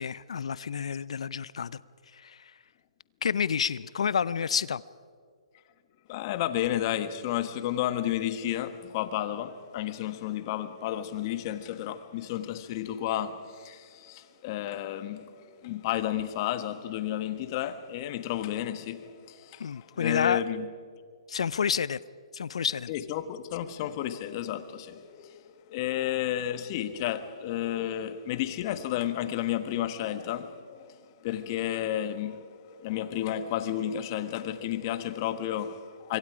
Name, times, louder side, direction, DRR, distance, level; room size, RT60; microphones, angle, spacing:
voice 1, 0.0-1.8 2.1-2.5 3.2-4.8 19.6-20.4 21.3-22.0 22.3-22.9, left 7 dB, 75° left, 0.5 m, -29 dB
voice 2, 6.1-15.3 15.6-20.7 22.9-25.4 25.7-30.9 31.2-36.2, left 12 dB, 40° left, 1.4 m, -32 dB
25.5 x 24.5 x 5.0 m
hypercardioid pair, 140°, 3 cm